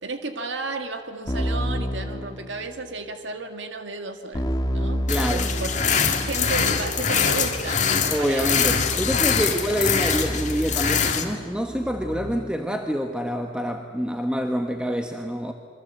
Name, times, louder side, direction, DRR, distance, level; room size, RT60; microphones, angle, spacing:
voice 1, 0.0-4.5 4.7-5.7 6.1-8.6 9.5-9.6, right 3 dB, 85° right, 6 dB, 1.9 m, -33 dB
Keyboard (musical), 1.3-2.9 4.3-12.7, equal, 20° left, 1.5 m, -31 dB
sound 1, 5.1-11.2, left 6 dB, 40° left, 2.3 m, -24 dB
voice 2, 5.1-5.5 8.1-15.5, equal, 5° right, 4 dB, 1.2 m, -26 dB
27.0 x 23.5 x 8.2 m, 2.1 s
head